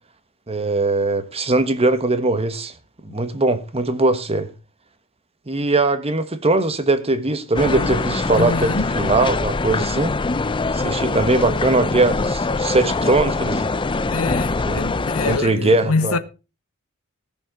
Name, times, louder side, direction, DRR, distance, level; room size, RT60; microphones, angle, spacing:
voice 1, 0.5-2.7 3.1-4.5 5.5-10.1 10.7-13.7 14.6-14.9 15.3-16.2, right 2 dB, 25° right, 1.3 m, -20 dB
sound 1, 7.5-15.4, left 3 dB, 25° left, 0.5 m, -23 dB
voice 2, 8.3-9.0 14.1-16.2, left 3 dB, 75° left, 1.2 m, -25 dB
17.5 x 7.1 x 5.0 m
head